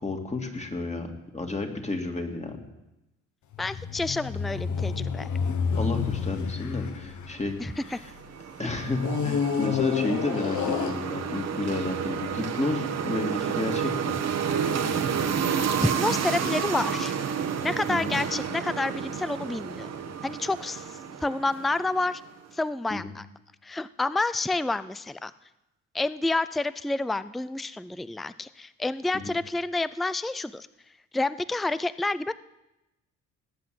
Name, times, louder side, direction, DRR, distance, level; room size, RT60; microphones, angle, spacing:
voice 1, 0.0-2.6 5.7-7.6 7.9-8.1 8.6-14.2 17.9-18.2 22.9-23.1 29.1-29.3, left 2 dB, 20° left, 4 dB, 2.4 m, -31 dB
sound 1, 3.5-8.2 9.0-11.5 12.2-12.3, left 6 dB, 75° left, 1.4 m, -29 dB
voice 2, 3.6-5.3 7.6-8.0 15.8-17.2 17.6-19.9 20.2-20.9 21.2-22.2 22.5-23.3 23.6-25.3 25.9-30.7 31.1-32.3, left 2 dB, ahead, 16 dB, 0.4 m, -29 dB
sound 2, 7.8-22.2, right 7 dB, 60° right, 1.4 m, -30 dB
18.5 x 8.1 x 7.8 m, 0.95 s
cardioid pair, 90°, 30 cm